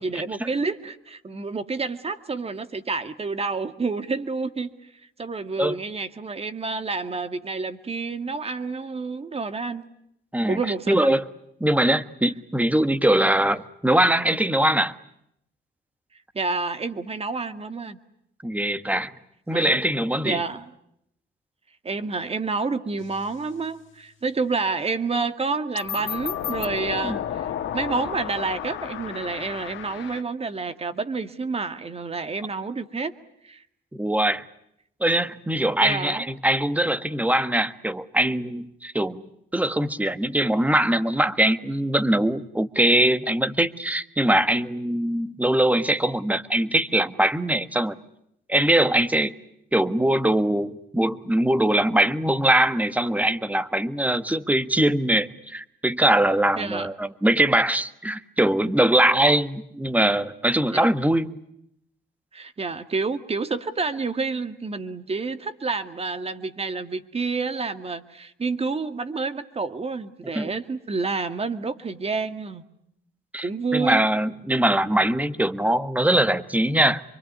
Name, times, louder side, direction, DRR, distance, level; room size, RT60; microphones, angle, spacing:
voice 1, 0.0-4.7 5.2-9.8 10.5-11.1 16.3-18.0 19.5-19.8 20.2-20.6 21.8-33.1 33.4-33.6 35.8-36.3 56.6-56.9 60.7-60.9 62.3-72.6 73.4-74.1, right 4 dB, 30° right, 10 dB, 2.0 m, -29 dB
voice 2, 10.9-11.2 11.6-14.9 18.4-19.1 19.5-20.4 27.0-27.2 33.9-34.4 35.0-39.2 39.5-48.0 48.5-49.3 49.7-61.4 70.3-70.5 73.3-77.0, right 1 dB, 5° right, 12 dB, 1.4 m, -22 dB
sound 1, 23.0-23.3 25.8-30.2, left 10 dB, 75° left, 1.7 m, -32 dB
26.0 x 24.0 x 9.5 m, 0.75 s
cardioid pair, 90°, 20 cm